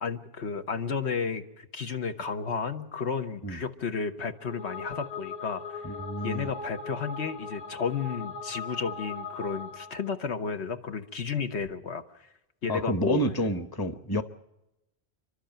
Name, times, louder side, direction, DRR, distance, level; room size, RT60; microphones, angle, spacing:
voice 1, 0.0-5.8 6.2-12.0 12.6-13.2, left 5 dB, 85° left, 1.5 m, -32 dB
sound 1, 4.3-10.1, left 4 dB, 65° left, 4.1 m, -39 dB
voice 2, 5.8-6.5 12.7-14.2, equal, 20° left, 1.0 m, -29 dB
29.5 x 12.0 x 8.9 m
omnidirectional pair, 1.1 m